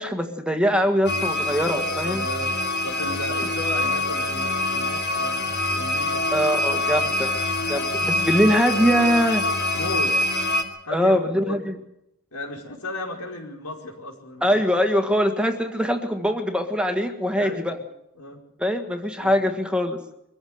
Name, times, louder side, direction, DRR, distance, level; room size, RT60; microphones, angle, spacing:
voice 1, 0.0-2.2 6.3-7.3 7.7-9.4 10.9-11.7 14.4-17.8 18.6-20.0, equal, 5° right, 6 dB, 1.6 m, -22 dB
sound 1, 1.0-10.6, left 1 dB, 50° left, 2.6 m, -25 dB
voice 2, 2.0-2.6 2.8-6.3 7.6-7.9 9.7-10.2 10.8-11.6 12.3-14.6 17.4-17.8 18.2-18.4 19.2-19.5, left 1 dB, 85° left, 2 dB, 5.0 m, -35 dB
23.5 x 15.0 x 7.9 m, 0.84 s
head